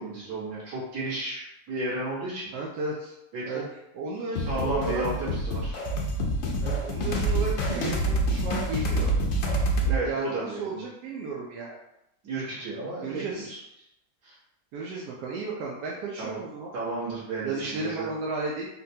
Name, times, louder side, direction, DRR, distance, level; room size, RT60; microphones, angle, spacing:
voice 1, 0.0-2.5 3.3-3.6 4.3-5.8 9.8-10.8 12.2-13.6 14.2-14.4 16.2-16.4 16.7-18.1, right 2 dB, 65° right, -8 dB, 1.8 m, -33 dB
voice 2, 2.5-3.1 3.4-3.6 3.9-5.0 6.6-8.0 8.3-9.1 10.0-11.8 13.0-13.5 14.7-16.7 17.4-18.7, right 3 dB, 90° right, -3 dB, 1.2 m, -33 dB
sound 1, 4.4-10.0, right 1 dB, 70° left, 0.6 m, -27 dB
4.1 x 2.2 x 2.7 m, 0.83 s
omnidirectional pair, 1.8 m